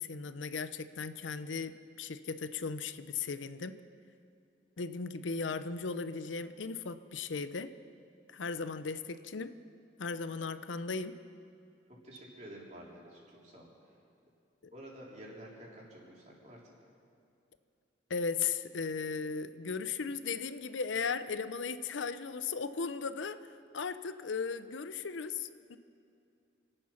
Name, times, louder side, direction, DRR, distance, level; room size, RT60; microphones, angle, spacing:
voice 1, 0.0-3.8 4.8-7.7 8.3-9.5 10.0-11.2 18.1-23.4 23.7-25.8, left 5 dB, 85° left, 12 dB, 0.6 m, -36 dB
voice 2, 12.0-13.7 14.7-16.7, right 1 dB, 40° right, -3 dB, 3.5 m, -50 dB
27.0 x 9.1 x 5.8 m, 2.4 s
head